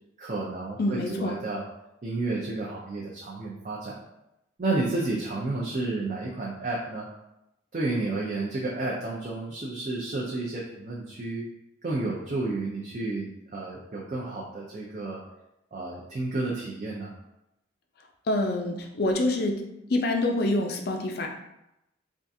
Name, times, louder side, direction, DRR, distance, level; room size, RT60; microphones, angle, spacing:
voice 1, 0.2-1.6 2.0-4.0 4.6-7.1 7.7-11.4 11.8-15.2 15.7-17.1, right 2 dB, 40° right, -5 dB, 0.4 m, -31 dB
voice 2, 0.8-1.3 18.3-19.6 19.9-21.3, left 2 dB, 50° left, 2 dB, 0.4 m, -26 dB
3.5 x 2.4 x 2.6 m, 0.87 s
head